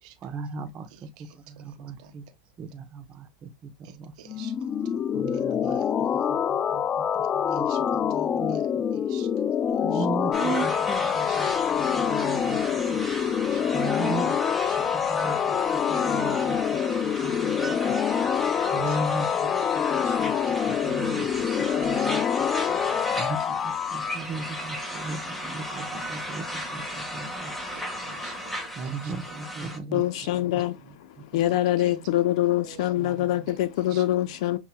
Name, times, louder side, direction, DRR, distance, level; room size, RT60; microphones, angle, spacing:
voice 1, 0.2-2.3 2.6-4.1 5.1-5.8 6.3-6.8 7.1-7.7 7.9-8.6 9.8-11.5 11.8-13.0 13.7-14.4 14.9-15.6 15.9-18.0 18.7-19.5 19.9-20.3 20.7-21.3 21.6-22.5 23.2-27.5 28.8-31.0 31.3-31.4 32.0-32.1 33.0-33.5, right 3 dB, 30° right, 0.9 m, -37 dB
voice 2, 0.9-2.1 3.8-4.6 4.8-5.0 5.3-6.1 7.2-7.8 8.1-9.3 9.6-11.4 12.3-13.1 13.5-13.8 14.7-15.9 18.8-19.3 19.5-19.7 20.0-20.2 21.5-22.2 22.5-23.2 27.7-30.3 31.5-32.0 32.5-32.9 33.5-34.0, right 8 dB, 65° right, 1.4 m, -51 dB
sound 1, 4.3-24.2, left 8 dB, 25° left, 0.3 m, -26 dB
sound 2, 10.3-29.8, equal, 5° left, 1.5 m, -34 dB
voice 3, 29.9-30.8 31.3-34.6, left 14 dB, 70° left, 0.7 m, -24 dB
7.8 x 2.8 x 2.3 m
supercardioid pair, 125°, 4 cm